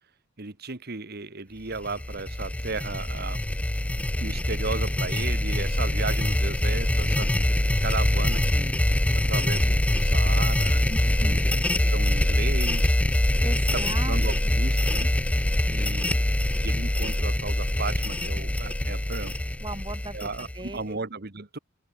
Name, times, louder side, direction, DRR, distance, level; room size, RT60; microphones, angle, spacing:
voice 1, 0.4-3.5 4.2-8.7 9.1-10.8 11.2-11.4 11.9-13.0 13.7-15.1 15.7-16.2 16.6-19.3 20.1-21.6, right 3 dB, 45° right, 1.4 m, -35 dB
sound 1, 1.7-20.8, left 1 dB, 5° left, 0.3 m, -24 dB
sound 2, 5.5-13.4, equal, 40° left, 7.8 m, -47 dB
voice 2, 10.9-11.6 13.4-14.2 14.4-14.5 19.6-21.0, right 2 dB, 20° right, 2.4 m, -38 dB
open air
head